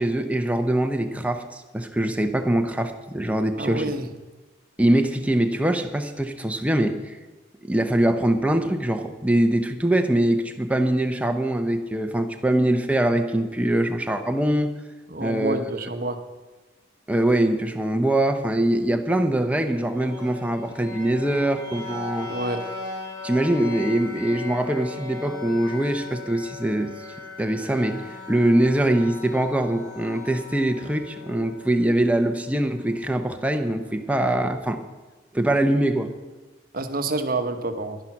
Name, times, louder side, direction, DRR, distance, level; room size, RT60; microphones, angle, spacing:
voice 1, 0.0-3.8 4.8-7.2 7.7-14.7 15.2-15.6 17.1-22.3 23.2-26.9 27.4-34.8 35.3-36.1, right 1 dB, 5° right, 6 dB, 0.8 m, -23 dB
voice 2, 3.6-4.1 15.1-16.2 22.3-22.6 36.7-38.0, right 2 dB, 45° right, 8 dB, 1.0 m, -28 dB
sound 1, 19.7-33.6, left 3 dB, 20° left, 4.3 m, -39 dB
11.5 x 10.5 x 5.9 m, 1.3 s
head